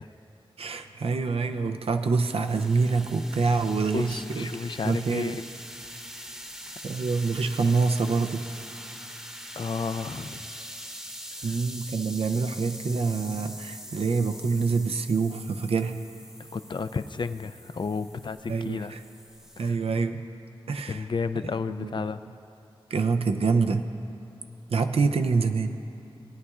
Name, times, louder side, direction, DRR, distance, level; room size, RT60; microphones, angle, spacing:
voice 1, 0.6-4.5 4.8-5.4 6.8-8.4 11.4-16.0 18.5-19.0 19.6-20.2 20.7-21.1 21.4-21.5 21.8-22.0 22.9-23.9 24.7-25.8, right 4 dB, 85° right, 7 dB, 0.5 m, -26 dB
sound 1, 1.5-19.7, equal, 5° right, 0.8 m, -43 dB
voice 2, 3.9-5.5 9.6-10.4 11.4-11.5 16.5-19.0 19.6-19.8 20.9-22.2, left 4 dB, 55° left, 11 dB, 0.3 m, -32 dB
18.5 x 9.7 x 2.4 m, 2.8 s
wide cardioid pair, 55°, 10 cm